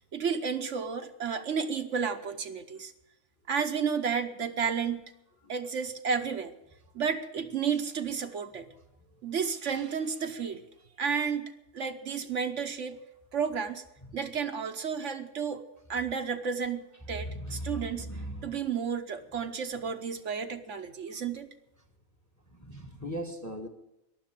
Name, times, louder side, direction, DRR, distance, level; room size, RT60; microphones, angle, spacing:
voice 1, 0.1-2.9 3.5-5.1 5.5-6.5 6.9-8.7 9.2-10.7 11.0-13.0 13.3-13.8 14.1-15.6 15.9-18.1 18.4-21.5, right 6 dB, 65° right, 1.2 m, -32 dB
voice 2, 17.1-18.6 22.5-23.7, equal, 15° left, 1.3 m, -38 dB
15.0 x 11.0 x 7.4 m
omnidirectional pair, 1.4 m